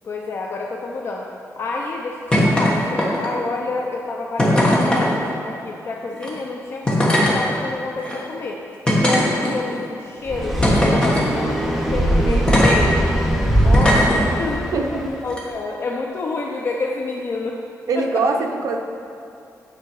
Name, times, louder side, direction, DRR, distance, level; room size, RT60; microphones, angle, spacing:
voice 1, 0.0-1.3 1.6-8.6 9.0-13.1 13.6-14.1 14.4-17.6, left 3 dB, 45° left, 0 dB, 0.6 m, -28 dB
sound 1, 2.3-2.7 3.0-3.4 4.4-5.1 6.1-6.3 6.9-7.4 8.0-8.1 8.9-9.7 10.6-11.2 12.5-12.8 13.7-14.2 15.3-15.4, left 1 dB, 15° left, 1.3 m, -18 dB
sound 2, 10.3-15.1, right 1 dB, ahead, 0.9 m, -21 dB
voice 2, 14.7-15.1 17.9-18.8, right 3 dB, 70° right, 3 dB, 0.8 m, -22 dB
9.3 x 6.7 x 4.7 m, 2.6 s
wide cardioid pair, 170°, 6 cm